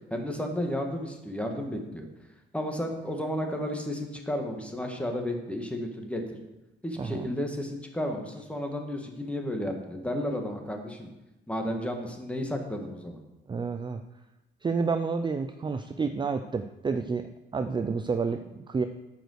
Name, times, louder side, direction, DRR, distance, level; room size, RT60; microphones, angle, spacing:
voice 1, 0.1-2.1 2.5-6.4 6.8-11.1 11.5-13.2, left 1 dB, 5° left, 2 dB, 1.6 m, -32 dB
voice 2, 7.0-7.3 13.5-14.0 14.6-17.3 17.5-18.8, right 4 dB, 25° right, 8 dB, 0.5 m, -29 dB
8.8 x 5.2 x 6.4 m, 0.99 s
cardioid pair, 90°, 20 cm